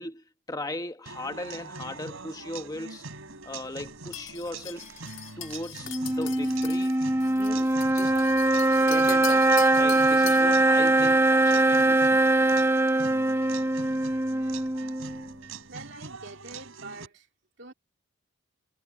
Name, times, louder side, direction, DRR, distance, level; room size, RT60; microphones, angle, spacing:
voice 1, 0.0-3.0 3.4-4.9 5.4-7.0 7.4-8.2 8.7-9.5 9.8-12.2, left 1 dB, 20° left, 1.4 m, -38 dB
sound 1, 1.1-17.1, right 4 dB, 85° right, 3.4 m, -43 dB
sound 2, 4.1-10.6, left 12 dB, 65° left, 1.5 m, -41 dB
sound 3, 5.9-15.3, right 2 dB, 10° right, 0.5 m, -22 dB
voice 2, 15.7-17.3 17.6-17.7, right 3 dB, 55° right, 2.9 m, -44 dB
head